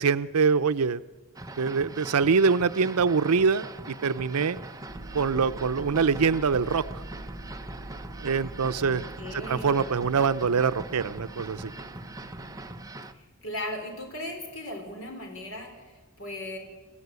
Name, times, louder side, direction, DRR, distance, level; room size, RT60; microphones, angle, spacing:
voice 1, 0.0-1.0 1.6-4.6 5.1-7.0 8.2-9.0 9.3-11.7, right 5 dB, 90° right, 13 dB, 0.6 m, -24 dB
sound 1, 1.4-13.1, right 1 dB, 15° right, 0.8 m, -42 dB
sound 2, 4.9-12.8, right 2 dB, 40° right, 5.9 m, -45 dB
voice 2, 8.8-9.8 13.1-16.6, left 1 dB, 65° left, 3 dB, 4.1 m, -38 dB
27.0 x 15.0 x 8.2 m, 1.3 s
head